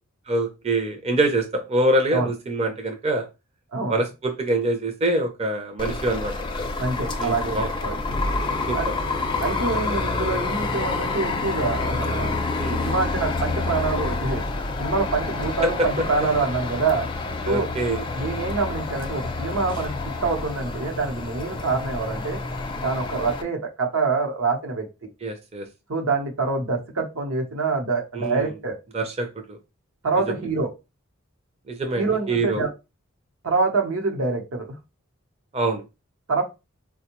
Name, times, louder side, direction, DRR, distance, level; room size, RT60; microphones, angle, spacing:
voice 1, 0.3-3.3 3.9-6.3 7.2-7.7 8.7-8.8 12.6-12.8 17.5-18.0 25.2-25.7 28.1-28.5 28.9-29.6 31.7-32.6 35.5-35.8, right 2 dB, 30° right, 4 dB, 0.5 m, -25 dB
sound 1, 5.8-23.4, left 3 dB, 25° left, 0.5 m, -28 dB
voice 2, 6.8-8.2 8.7-8.9 9.4-12.3 12.8-14.4 14.8-17.1 17.5-17.7 18.1-22.4 22.8-25.1 25.9-28.7 30.0-30.7 32.0-32.7 33.4-34.8 36.3-36.4, right 4 dB, 75° right, 3 dB, 0.8 m, -26 dB
4.3 x 2.2 x 2.9 m, 0.26 s
head